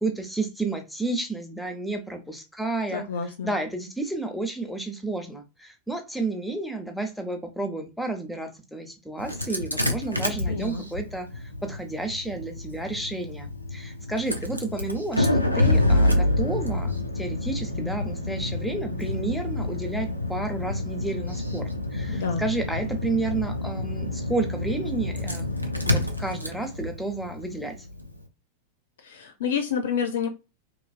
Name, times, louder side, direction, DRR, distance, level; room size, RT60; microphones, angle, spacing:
voice 1, 0.0-3.0 3.4-25.5 25.9-27.7, right 2 dB, ahead, 0.6 m, -31 dB
voice 2, 2.9-3.5 10.5-10.8 22.1-22.4 29.0-30.3, left 6 dB, 60° left, 0.4 m, -29 dB
Engine starting, 9.2-28.2, left 1 dB, 90° right, 0.4 m, -28 dB
2.8 x 2.4 x 2.4 m
figure-of-eight pair, 90°, 0 cm